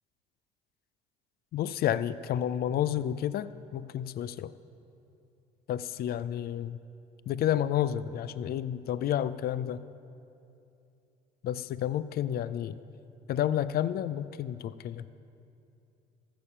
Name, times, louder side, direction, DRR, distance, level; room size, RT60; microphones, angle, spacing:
voice 1, 1.5-4.5 5.7-6.8 7.3-9.8 11.4-12.8 13.3-15.0, left 10 dB, 50° left, 16 dB, 0.4 m, -30 dB
14.5 x 6.9 x 5.7 m, 2.7 s
hypercardioid pair, 65°, 21 cm